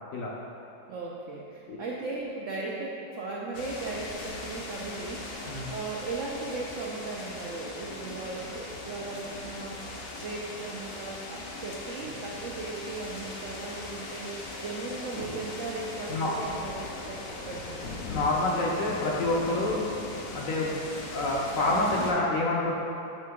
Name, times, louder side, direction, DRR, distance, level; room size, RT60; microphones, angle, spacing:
voice 1, 0.9-5.3 5.7-17.9, right 3 dB, 75° right, -3 dB, 0.7 m, -37 dB
sound 1, 3.5-22.1, left 2 dB, 80° left, 0.5 m, -39 dB
voice 2, 18.1-19.8 20.3-20.7 21.1-22.7, left 2 dB, 65° left, -3 dB, 0.9 m, -27 dB
7.6 x 3.7 x 3.6 m, 2.7 s
omnidirectional pair, 1.9 m